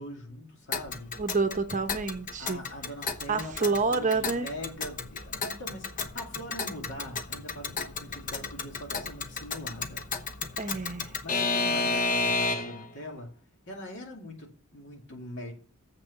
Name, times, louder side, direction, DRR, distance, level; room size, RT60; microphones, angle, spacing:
voice 1, 0.0-1.1 2.4-10.1 11.2-13.3 13.7-15.5, left 1 dB, 60° left, 2.5 m, -42 dB
Alarm / Clock, 0.7-12.9, left 4 dB, 40° left, 0.9 m, -32 dB
voice 2, 1.2-2.6 3.3-4.5 10.6-11.2, right 4 dB, 35° right, 0.9 m, -28 dB
7.4 x 6.0 x 6.9 m
head